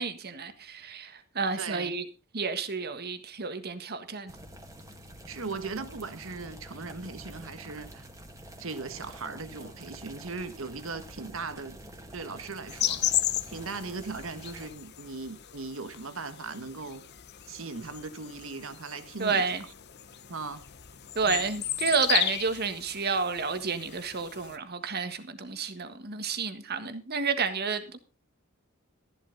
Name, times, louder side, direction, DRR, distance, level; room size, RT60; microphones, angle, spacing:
voice 1, 0.0-2.0 2.3-4.3 19.2-19.6 21.1-28.0, right 5 dB, 50° right, 1.6 m, -30 dB
voice 2, 1.6-1.9 5.3-8.1 8.6-11.8 12.1-13.0 13.5-17.0 17.5-19.7 20.3-20.6 21.2-21.5, right 4 dB, 70° right, 1.5 m, -38 dB
sound 1, 4.3-14.7, right 1 dB, 15° right, 2.0 m, -47 dB
sound 2, 12.7-24.6, left 12 dB, 55° left, 0.9 m, -35 dB
14.0 x 11.0 x 4.0 m
head